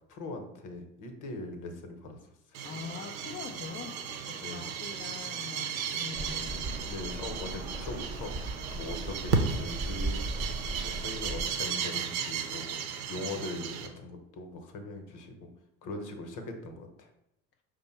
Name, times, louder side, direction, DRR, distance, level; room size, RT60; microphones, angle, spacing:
voice 1, 0.1-2.2 4.4-4.7 6.8-8.3 8.7-10.3 10.8-12.8 13.1-15.5 15.8-17.1, left 2 dB, 50° left, 5 dB, 1.0 m, -40 dB
sound 1, 2.5-13.9, right 6 dB, 80° right, 0.7 m, -35 dB
voice 2, 2.6-6.6 8.8-9.0 15.8-16.0, left 6 dB, 30° left, 3 dB, 0.4 m, -44 dB
Rain, 6.1-11.5, right 2 dB, 20° right, 0.9 m, -37 dB
5.2 x 2.2 x 4.3 m, 0.82 s
hypercardioid pair, 60°, 41 cm